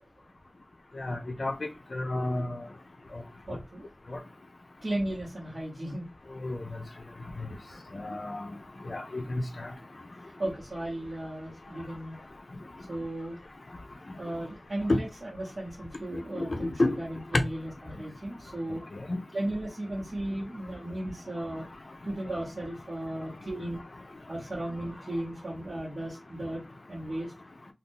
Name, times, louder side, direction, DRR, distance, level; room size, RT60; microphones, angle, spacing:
voice 1, 1.0-1.5 1.9-2.6 6.4-6.6 7.9-8.5 8.9-9.7 14.9-15.0 16.3-16.9 17.3-17.4 19.1-19.2, left 2 dB, 70° left, 0.5 m, -29 dB
voice 2, 3.5-3.9 4.8-6.1 7.7-7.8 10.2-12.2 12.9-13.4 14.2-15.1 15.3-18.8 19.3-21.7 22.0-23.8 24.3-26.6 26.9-27.3, right 1 dB, 60° right, 1.0 m, -35 dB
2.6 x 2.4 x 3.5 m
wide cardioid pair, 55°, 0 cm